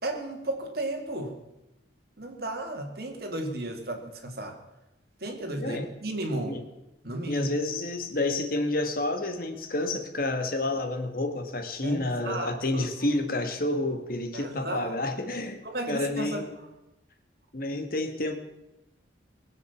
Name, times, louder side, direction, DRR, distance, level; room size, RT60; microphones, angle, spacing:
voice 1, 0.0-1.3 2.2-4.6 5.2-6.6 7.0-7.5 11.8-12.9 14.3-14.9 15.6-16.5, right 1 dB, 55° right, 3 dB, 2.3 m, -33 dB
voice 2, 7.3-16.6 17.5-18.4, left 2 dB, 50° left, 6 dB, 1.5 m, -29 dB
20.5 x 7.7 x 7.1 m, 0.95 s
head